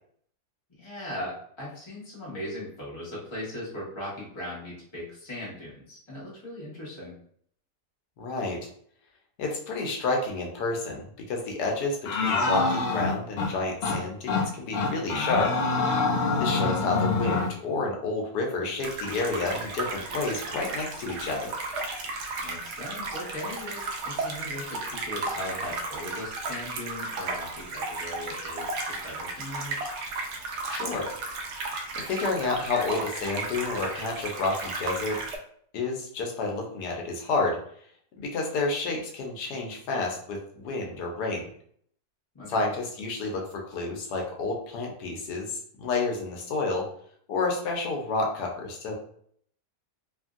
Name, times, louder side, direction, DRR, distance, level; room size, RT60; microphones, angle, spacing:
voice 1, 0.8-7.1 22.4-29.8 42.3-42.6, left 1 dB, 20° left, -7 dB, 1.1 m, -38 dB
voice 2, 8.2-8.7 9.4-15.5 16.4-21.5 30.7-31.1 31.7-35.2 35.7-37.6 38.2-41.5 42.5-46.9 47.3-48.9, left 3 dB, 90° left, 1 dB, 1.3 m, -30 dB
sound 1, 12.1-13.5 13.8-14.0 14.3-14.5 14.7-17.5, left 3 dB, 65° left, 0.6 m, -25 dB
sound 2, 18.8-35.4, right 3 dB, 70° right, 0.7 m, -34 dB
3.0 x 2.6 x 2.4 m, 0.63 s
omnidirectional pair, 1.7 m